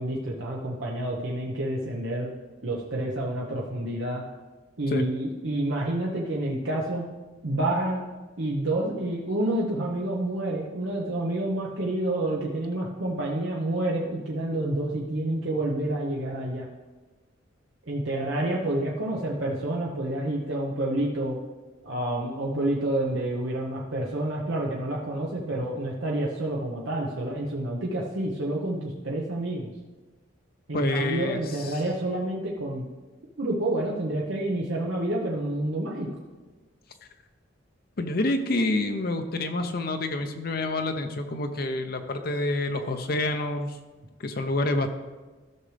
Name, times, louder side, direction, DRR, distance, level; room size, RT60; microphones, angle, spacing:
voice 1, 0.0-2.3 2.6-4.2 4.8-7.1 7.4-8.0 8.4-16.7 17.9-21.4 21.8-29.7 30.7-32.9 33.4-36.1, right 1 dB, 75° right, -3 dB, 1.1 m, -28 dB
voice 2, 30.7-31.8 38.0-43.8 44.2-44.9, left 2 dB, 50° left, 6 dB, 0.6 m, -28 dB
15.0 x 6.3 x 3.4 m, 1.3 s
head